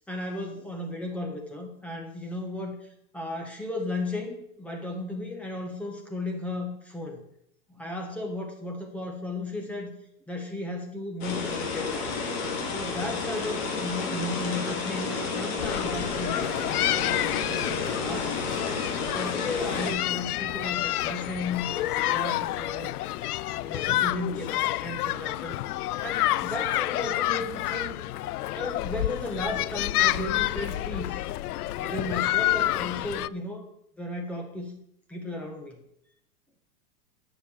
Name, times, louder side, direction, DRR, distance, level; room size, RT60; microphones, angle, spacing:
voice 1, 0.1-2.8 3.1-7.2 7.7-9.9 10.3-12.2 12.7-18.4 19.1-22.9 23.6-25.6 26.0-27.9 28.5-31.2 31.8-33.6 34.0-34.8 35.1-35.8, left 2 dB, 5° left, 1 dB, 1.3 m, -35 dB
sound 1, 11.2-19.9, left 4 dB, 40° left, 2.8 m, -31 dB
sound 2, 15.6-33.3, left 15 dB, 75° left, 0.5 m, -29 dB
10.0 x 7.1 x 7.1 m, 0.73 s
supercardioid pair, 160°, 46 cm